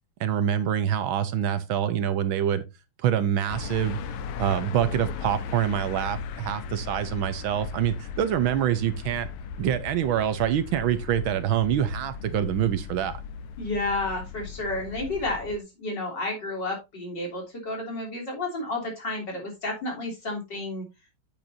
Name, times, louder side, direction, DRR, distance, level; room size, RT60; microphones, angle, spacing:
voice 1, 0.2-2.6 3.0-4.0 4.4-9.3 9.6-13.2, right 10 dB, 70° right, 1.5 m, -25 dB
sound 1, 3.5-15.6, left 6 dB, 90° left, 1.8 m, -37 dB
voice 2, 13.6-20.8, left 2 dB, 55° left, 3.9 m, -31 dB
9.0 x 8.3 x 2.6 m
omnidirectional pair, 2.4 m